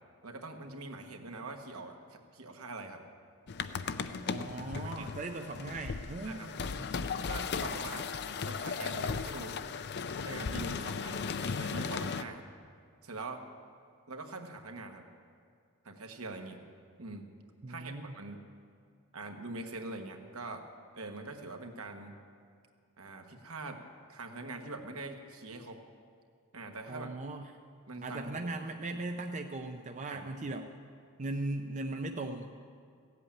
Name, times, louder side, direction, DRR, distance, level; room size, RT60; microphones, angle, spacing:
voice 1, 0.2-3.0 4.7-5.1 6.2-6.5 7.3-8.1 8.4-9.6 10.2-12.4 13.0-13.4 14.1-15.0 15.8-16.6 17.0-17.3 17.7-18.4 19.1-20.6 20.9-22.1 23.0-23.8 24.1-25.8 26.5-27.1 27.9-28.5 30.1-30.3, right 2 dB, 70° right, 4 dB, 1.3 m, -43 dB
sound 1, 3.5-12.2, left 5 dB, 50° left, 0.5 m, -36 dB
voice 2, 4.3-6.9 17.6-18.1 26.9-27.5 28.0-30.7 31.2-32.5, right 2 dB, 35° right, 5 dB, 0.5 m, -38 dB
16.0 x 8.2 x 8.6 m, 2.2 s
head